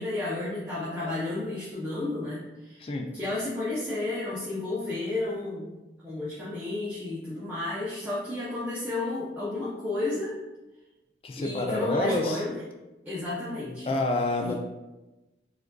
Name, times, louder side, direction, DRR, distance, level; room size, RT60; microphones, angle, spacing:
voice 1, 0.0-5.7 6.0-10.4 11.4-12.6 13.1-13.9 14.4-14.5, left 2 dB, 10° right, -9 dB, 0.6 m, -32 dB
voice 2, 11.2-12.4 13.8-14.5, left 2 dB, 30° left, 2 dB, 0.4 m, -27 dB
4.8 x 2.5 x 2.2 m, 1.1 s
head